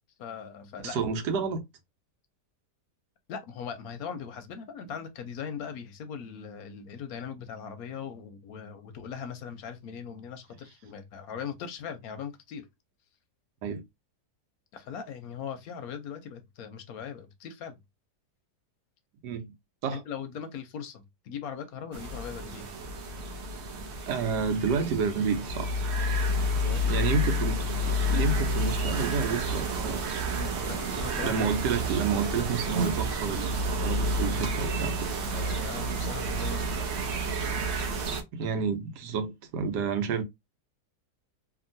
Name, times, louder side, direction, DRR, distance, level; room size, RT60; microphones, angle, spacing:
voice 1, 0.2-1.0 3.3-12.7 14.7-17.8 19.9-22.8 26.6-27.0 30.3-31.4 35.3-37.1, left 7 dB, 70° left, 0.9 m, -40 dB
voice 2, 0.8-1.6 13.6-13.8 19.2-19.5 19.8-20.0 24.1-25.8 26.9-27.6 27.9-30.0 31.2-34.9 38.3-40.2, right 5 dB, 80° right, 1.3 m, -29 dB
sound 1, 21.9-38.2, equal, 60° right, 0.7 m, -30 dB
2.9 x 2.6 x 2.5 m
omnidirectional pair, 1.8 m